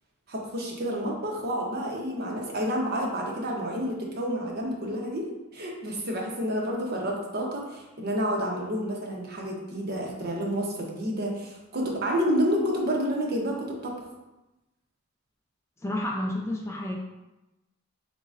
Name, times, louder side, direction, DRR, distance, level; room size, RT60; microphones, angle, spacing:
voice 1, 0.3-5.3 5.5-13.9, equal, 50° right, -1 dB, 0.8 m, -29 dB
voice 2, 15.8-17.0, left 1 dB, 15° left, -1 dB, 0.3 m, -30 dB
4.0 x 3.8 x 2.5 m, 1.0 s
head